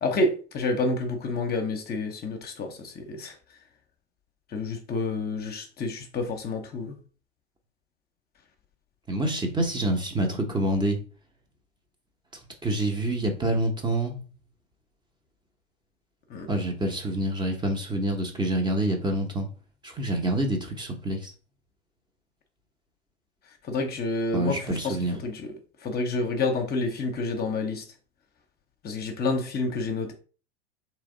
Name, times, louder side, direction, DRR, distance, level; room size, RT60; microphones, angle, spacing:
voice 1, 0.0-3.3 4.5-7.0 16.3-16.5 23.7-25.0 25.2-25.5 25.8-27.8 28.8-30.1, left 3 dB, 30° left, 0.8 m, -29 dB
voice 2, 9.1-11.0 12.6-14.1 16.5-19.5 19.8-21.3 24.3-25.1, right 1 dB, 15° right, 0.7 m, -27 dB
3.3 x 3.0 x 3.8 m
figure-of-eight pair, 85°, 34 cm